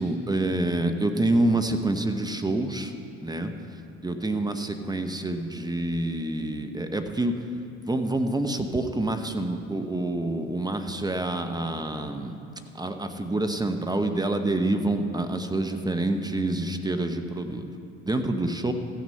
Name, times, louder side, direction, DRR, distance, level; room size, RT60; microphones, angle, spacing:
voice 1, 0.0-2.9 3.2-3.5 4.0-7.3 7.9-12.4 12.7-17.7 18.1-18.7, right 2 dB, 10° right, 6 dB, 0.9 m, -27 dB
15.0 x 6.4 x 5.5 m, 2.6 s
hypercardioid pair, 60°, 32 cm